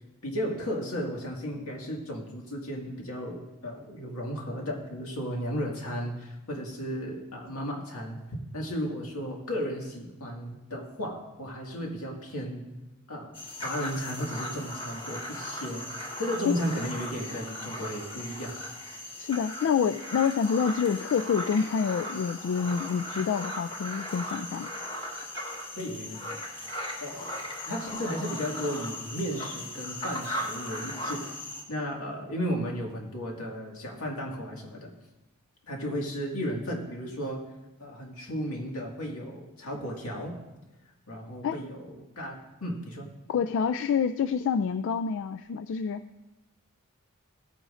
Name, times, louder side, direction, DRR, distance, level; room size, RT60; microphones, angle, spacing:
voice 1, 0.2-8.2 8.5-12.6 13.1-13.4 13.6-15.9 16.2-18.6 25.8-26.3 27.0-27.3 27.7-31.3 31.7-34.9 35.7-37.4 37.8-40.4 41.1-43.1, equal, 80° left, -1 dB, 2.0 m, -34 dB
sound 1, 13.3-31.6, left 1 dB, 25° left, 1.6 m, -38 dB
voice 2, 19.2-24.7 41.4-41.6 43.3-46.0, left 6 dB, 60° left, 11 dB, 0.3 m, -27 dB
16.0 x 9.0 x 2.5 m, 1.0 s
head